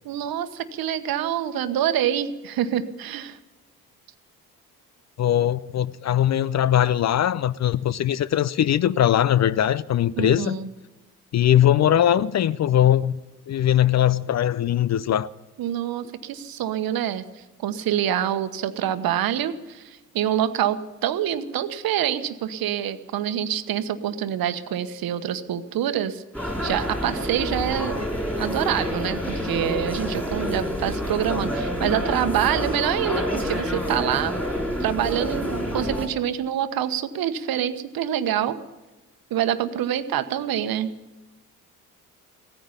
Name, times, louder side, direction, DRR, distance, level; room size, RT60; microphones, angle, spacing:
voice 1, 0.0-3.4 10.2-10.7 15.6-26.2 26.6-28.0 28.4-34.4 34.8-38.6 39.3-40.9, right 10 dB, 55° right, 1.2 m, -26 dB
voice 2, 5.2-10.6 11.3-13.1 13.5-15.3, left 11 dB, 40° left, 0.6 m, -20 dB
sound 1, 26.3-36.1, equal, 5° left, 5.4 m, -28 dB
17.5 x 14.5 x 5.7 m
figure-of-eight pair, 45°, 43 cm